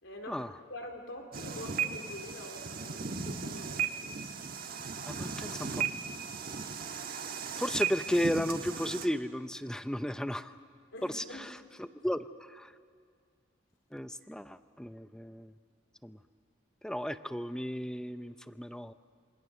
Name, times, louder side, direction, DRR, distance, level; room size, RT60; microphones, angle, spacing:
voice 1, 0.0-0.4 0.7-4.2 10.9-11.5, left 1 dB, 90° left, 2 dB, 3.6 m, -45 dB
sound 1, 1.3-9.1, right 6 dB, 50° right, 1.4 m, -36 dB
voice 2, 5.1-5.9 7.6-10.5 11.0-12.2 12.5-12.7 13.9-15.5 16.0-16.2 16.8-18.9, equal, 5° left, 11 dB, 0.6 m, -34 dB
27.5 x 24.5 x 6.8 m, 2.1 s
head